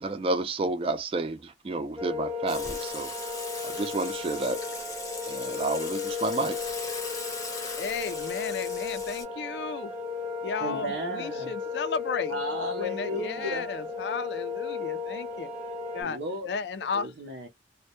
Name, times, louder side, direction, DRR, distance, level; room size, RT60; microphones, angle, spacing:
voice 1, 0.0-3.1 3.6-4.6 5.3-6.6, right 3 dB, 30° right, 0.3 m, -30 dB
sound 1, 2.0-16.0, left 4 dB, 15° right, 0.8 m, -35 dB
Water / Water tap faucet / Sink (filling or washing), 2.5-9.2, left 3 dB, 20° left, 0.6 m, -39 dB
voice 2, 7.7-9.9 10.4-12.3 12.7-15.5 15.9-16.2 16.5-17.1, left 5 dB, 65° left, 0.4 m, -34 dB
voice 3, 10.6-11.5 12.3-13.7 16.0-16.5 16.9-17.5, equal, 80° right, 0.6 m, -34 dB
2.2 x 2.0 x 2.8 m
head